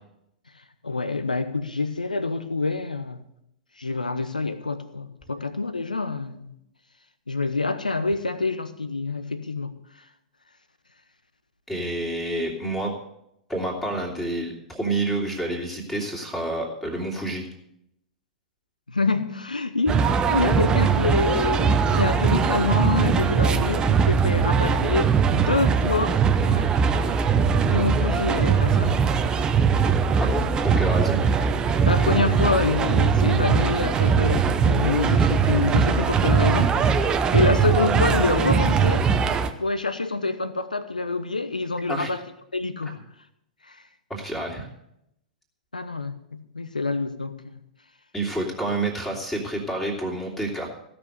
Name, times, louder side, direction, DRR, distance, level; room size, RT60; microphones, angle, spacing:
voice 1, 0.8-3.2 3.8-6.5 7.3-9.7 18.9-26.8 27.6-29.1 31.8-36.7 37.3-39.1 39.6-42.2 42.5-43.0 43.6-43.8 45.7-47.4, left 3 dB, 80° left, 12 dB, 1.0 m, -26 dB
voice 2, 11.7-12.9 13.5-17.4 30.2-31.2 41.9-42.1 44.1-44.7 48.1-50.7, right 2 dB, 5° left, -2 dB, 2.9 m, -28 dB
sound 1, 19.9-39.5, right 6 dB, 20° right, 0.8 m, -21 dB
16.0 x 6.1 x 8.0 m, 0.79 s
figure-of-eight pair, 100°, 4 cm